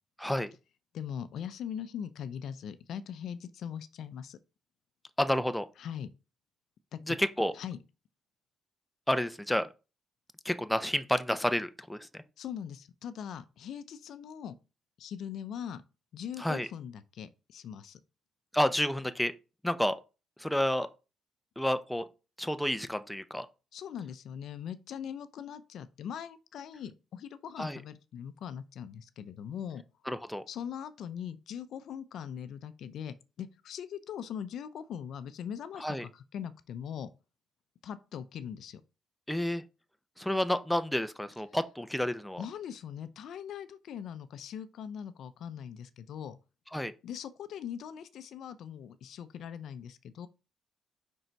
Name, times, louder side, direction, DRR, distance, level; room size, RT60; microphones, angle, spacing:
voice 1, 0.2-0.5 5.2-5.7 7.1-7.5 9.1-9.7 10.4-12.2 16.4-16.7 18.5-19.3 19.6-20.0 20.4-20.9 21.6-22.1 22.4-23.5 27.6-27.8 30.1-30.4 35.8-36.1 39.3-39.6 40.2-42.4 46.7-46.9, left 1 dB, 5° left, 0.6 m, -30 dB
voice 2, 0.9-4.4 5.8-6.1 6.9-7.2 7.5-7.8 12.4-14.6 15.0-15.8 16.1-18.0 23.7-29.8 30.5-37.1 37.8-38.8 42.4-46.4 47.0-50.3, left 8 dB, 70° left, 0.5 m, -41 dB
5.4 x 3.9 x 4.5 m
cardioid pair, 90°, 0 cm